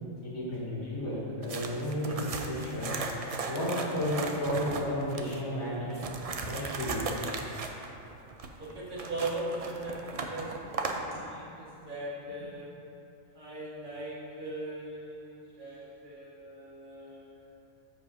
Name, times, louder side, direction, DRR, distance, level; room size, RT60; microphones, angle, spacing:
voice 1, 0.2-3.0 3.4-6.1 6.4-7.1 15.6-15.7, equal, 85° left, -9 dB, 2.5 m, -33 dB
sound 1, 1.4-5.4 5.9-11.0, right 4 dB, 75° right, 0.3 m, -37 dB
voice 2, 8.6-12.7 13.3-17.2, right 2 dB, 40° right, -6 dB, 1.6 m, -39 dB
14.0 x 4.9 x 2.7 m, 2.7 s
omnidirectional pair, 1.4 m